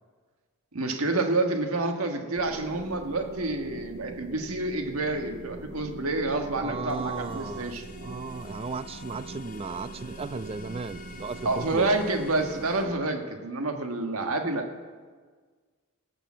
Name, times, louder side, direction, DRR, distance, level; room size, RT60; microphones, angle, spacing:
voice 1, 0.7-7.8 11.4-14.7, right 2 dB, 85° right, 5 dB, 1.5 m, -28 dB
sound 1, 2.4-12.9, right 3 dB, 50° right, 0.7 m, -43 dB
voice 2, 6.6-11.9, right 4 dB, 25° right, 16 dB, 0.3 m, -35 dB
sound 2, 6.9-12.8, left 3 dB, 40° left, 1.5 m, -49 dB
18.0 x 6.9 x 7.5 m, 1.5 s
head